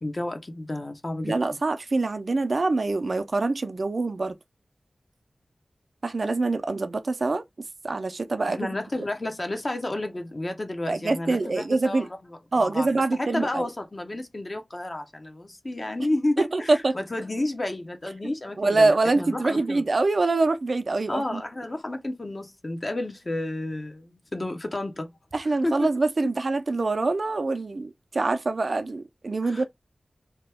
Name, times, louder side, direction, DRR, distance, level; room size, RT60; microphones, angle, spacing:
voice 1, 0.0-1.4 8.5-19.8 21.1-25.1 25.6-25.9 29.4-29.6, left 1 dB, 45° left, 0.8 m, -31 dB
voice 2, 1.2-4.4 6.0-7.4 7.8-8.7 10.9-12.1 12.5-13.7 16.4-16.9 18.6-21.4 25.3-29.6, right 3 dB, 65° right, 0.5 m, -25 dB
2.9 x 2.3 x 3.4 m
wide cardioid pair, 50°, 0 cm